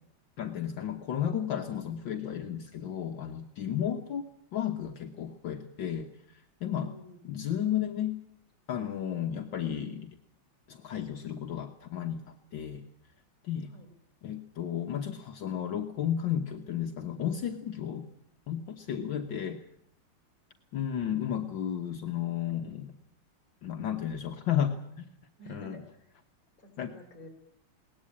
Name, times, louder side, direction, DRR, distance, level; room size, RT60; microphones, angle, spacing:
voice 1, 0.4-4.2 4.5-6.9 7.2-8.2 8.7-10.1 10.7-12.8 13.4-13.7 14.2-18.1 18.5-19.6 20.7-22.9 23.6-25.1 25.5-25.8 26.8-26.9, left 9 dB, 65° left, 5 dB, 1.8 m, -33 dB
voice 2, 6.8-7.2 13.7-13.9 18.9-19.2 25.4-26.1 26.6-27.3, left 1 dB, 40° left, 5 dB, 5.1 m, -50 dB
21.5 x 18.5 x 8.6 m, 0.72 s
omnidirectional pair, 2.3 m